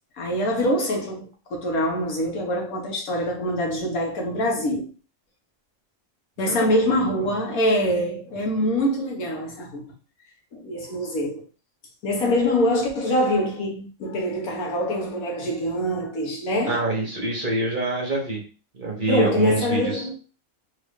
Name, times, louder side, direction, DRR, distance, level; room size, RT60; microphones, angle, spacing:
voice 1, 0.2-4.9 6.4-9.9 10.5-11.4 12.0-16.9 19.1-20.1, equal, 90° left, 1.5 m, -24 dB
voice 2, 6.4-6.9 7.2-7.3 16.7-18.4 18.7-20.1, right 2 dB, 40° right, 1.0 m, -26 dB
3.5 x 2.5 x 3.5 m
omnidirectional pair, 1.4 m